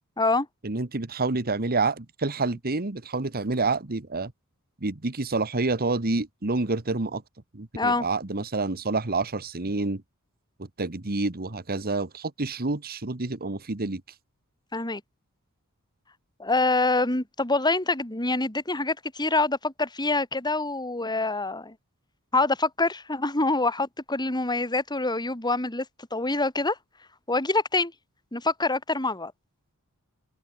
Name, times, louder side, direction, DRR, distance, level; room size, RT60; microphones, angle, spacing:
voice 1, 0.6-4.3 4.8-7.2 7.5-10.0 10.8-14.0, right 3 dB, 45° right, 1.5 m, -28 dB
voice 2, 7.7-8.1 14.7-15.0 16.4-21.7 22.3-25.9 26.1-26.8 27.3-27.9 28.3-29.3, left 2 dB, 20° left, 3.5 m, -25 dB
open air
head